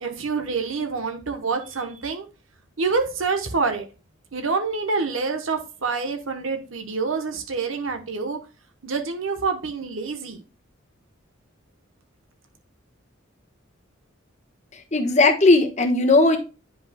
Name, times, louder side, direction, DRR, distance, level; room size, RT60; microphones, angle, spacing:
voice 1, 0.0-2.3 2.8-3.9 4.3-8.4 8.8-10.4, right 4 dB, 75° right, 5 dB, 1.0 m, -27 dB
voice 2, 14.7-16.4, left 2 dB, 35° left, 4 dB, 1.1 m, -17 dB
10.0 x 5.4 x 2.2 m, 0.32 s
head